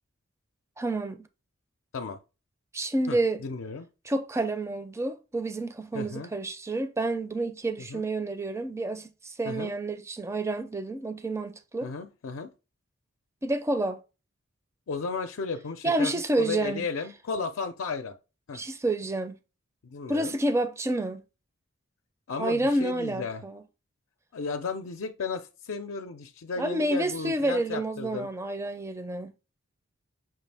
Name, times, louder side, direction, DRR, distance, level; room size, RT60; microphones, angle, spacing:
voice 1, 0.8-1.2 2.7-3.4 4.0-11.9 13.4-14.0 15.8-16.8 18.5-19.4 20.1-21.2 22.4-23.6 26.6-29.3, right 2 dB, 15° right, 0.4 m, -29 dB
voice 2, 3.1-3.9 5.9-6.3 7.8-8.0 9.4-9.7 11.8-12.5 14.9-18.1 18.5-18.6 19.8-20.3 22.3-23.4 24.3-28.3, left 4 dB, 80° left, 0.5 m, -34 dB
5.8 x 2.5 x 3.3 m
head